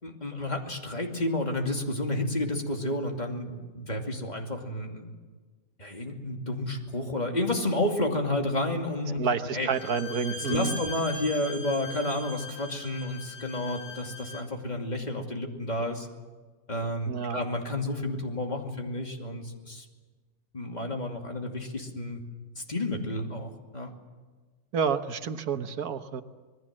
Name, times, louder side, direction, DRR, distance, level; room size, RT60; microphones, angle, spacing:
voice 1, 0.0-5.1 5.8-9.2 9.5-9.7 10.4-16.1 16.7-19.8 20.5-22.2 22.6-23.9, left 1 dB, 30° left, 2 dB, 2.7 m, -31 dB
voice 2, 9.2-10.8 17.1-17.4 24.7-26.2, right 6 dB, 80° right, 9 dB, 1.6 m, -29 dB
Bowed string instrument, 9.7-14.5, left 2 dB, 65° left, 2.5 m, -41 dB
26.5 x 20.5 x 7.5 m, 1.4 s
omnidirectional pair, 1.6 m